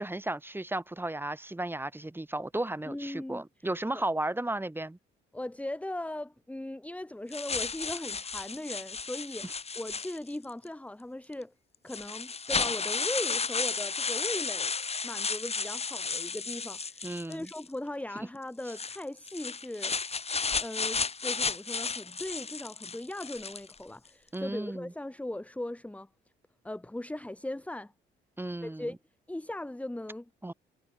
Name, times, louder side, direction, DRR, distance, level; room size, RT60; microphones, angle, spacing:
voice 1, 0.0-5.0 9.4-9.5 17.0-17.5 18.1-18.3 24.3-24.9 28.4-28.9 30.4-30.5, right 1 dB, 10° right, 3.2 m, -34 dB
voice 2, 2.9-3.4 3.9-4.0 5.3-9.4 9.7-11.5 11.8-14.7 15.0-19.9 20.6-26.1 26.6-27.9 28.6-29.0 29.3-30.3, left 1 dB, 5° left, 1.7 m, -38 dB
sound 1, 7.3-10.5 11.3-11.4 11.9-17.7 18.6-23.8, left 5 dB, 30° left, 2.4 m, -33 dB
cardioid pair, 90°, 20 cm